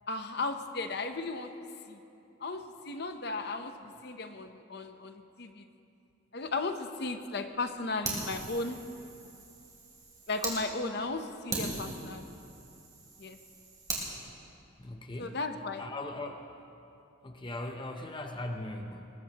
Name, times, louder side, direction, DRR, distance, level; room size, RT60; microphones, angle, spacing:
voice 1, 0.1-1.5 1.9-2.0 2.4-5.7 6.3-8.8 10.3-12.2 13.2-13.4 15.2-15.8, left 3 dB, 55° left, 7 dB, 0.8 m, -35 dB
Fire, 8.0-10.6 11.0-11.1 11.5-14.1, right 3 dB, 20° right, 3.2 m, -39 dB
voice 2, 14.8-15.4 15.8-16.6 17.2-19.1, left 2 dB, 25° left, 4 dB, 0.7 m, -39 dB
21.0 x 21.0 x 3.0 m, 2.7 s
head